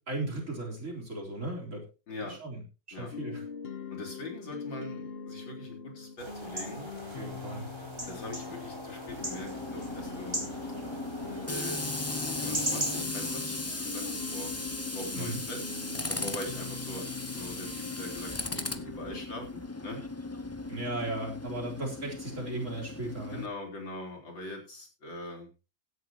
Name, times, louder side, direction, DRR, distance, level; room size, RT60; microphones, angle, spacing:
voice 1, 0.1-1.8 2.3-2.6 2.9-3.4 7.1-7.7 15.1-15.4 20.7-23.4, right 2 dB, 40° right, 2 dB, 4.4 m, -36 dB
voice 2, 2.1-2.4 2.9-3.1 3.9-6.9 8.1-10.4 11.4-11.8 12.4-14.1 14.3-14.5 14.9-15.6 16.1-20.0 23.3-25.5, left 2 dB, 70° left, 2 dB, 4.8 m, -42 dB
sound 1, 3.1-19.2, left 6 dB, 45° left, 0.8 m, -43 dB
sound 2, 6.2-13.0, right 1 dB, 15° right, 4.4 m, -39 dB
Tools, 9.1-23.5, left 2 dB, 25° left, 0.3 m, -37 dB
16.0 x 11.0 x 3.0 m, 0.31 s
omnidirectional pair, 2.1 m